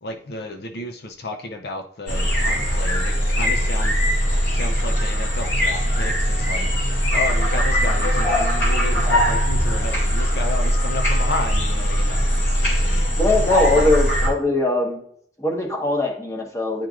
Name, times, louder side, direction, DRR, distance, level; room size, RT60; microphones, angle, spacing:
voice 1, 0.0-4.0 4.4-12.3 12.8-13.1 13.7-13.9, left 2 dB, 60° left, 5 dB, 0.6 m, -32 dB
sound 1, 2.1-14.3, equal, 90° left, 2.4 m, -20 dB
voice 2, 13.2-15.0 15.4-16.9, left 2 dB, 20° left, 0 dB, 1.2 m, -21 dB
10.0 x 4.5 x 2.4 m, 0.63 s
head